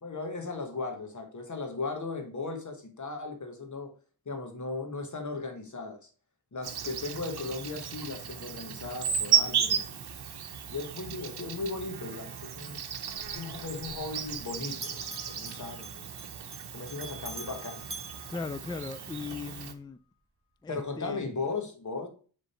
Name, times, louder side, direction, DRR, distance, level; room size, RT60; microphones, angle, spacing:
voice 1, 0.0-3.9 4.2-6.1 6.5-10.0 10.7-12.8 13.3-16.0 16.7-17.8 20.7-22.1, left 3 dB, 50° left, 1.5 m, -37 dB
Insect, 6.6-19.7, right 8 dB, 80° right, 0.8 m, -34 dB
Bell, 13.2-14.5 14.7-19.2, right 2 dB, 35° right, 1.1 m, -46 dB
voice 2, 18.3-20.0 20.6-21.3, left 4 dB, 10° left, 0.3 m, -38 dB
6.8 x 3.8 x 4.3 m
wide cardioid pair, 95°, 38 cm